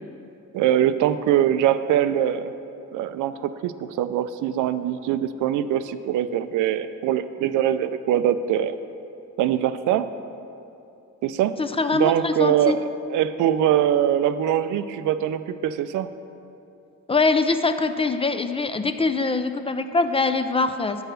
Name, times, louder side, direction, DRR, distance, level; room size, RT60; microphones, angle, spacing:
voice 1, 0.5-2.5 2.9-8.7 9.4-10.1 11.2-11.6 11.9-16.1, right 10 dB, 80° right, 12 dB, 0.5 m, -23 dB
voice 2, 11.6-12.8 17.1-21.0, left 3 dB, 20° left, 9 dB, 0.4 m, -23 dB
8.7 x 4.8 x 6.4 m, 2.7 s
cardioid pair, 90°, 30 cm